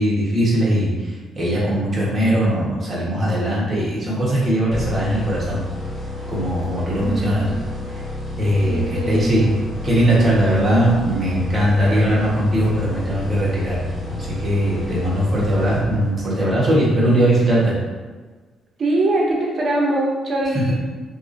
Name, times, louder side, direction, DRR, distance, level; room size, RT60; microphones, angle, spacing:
voice 1, 0.0-5.6 6.3-7.5 8.4-9.5 9.8-13.8 14.1-17.7, right 1 dB, 25° right, -7 dB, 1.4 m, -19 dB
sound 1, 4.7-16.4, left 2 dB, 25° left, 1.1 m, -31 dB
voice 2, 7.0-7.7 8.7-9.6 18.8-20.7, right 1 dB, 50° right, -2 dB, 0.7 m, -22 dB
3.4 x 3.0 x 2.7 m, 1.4 s
cardioid pair, 90°, 0 cm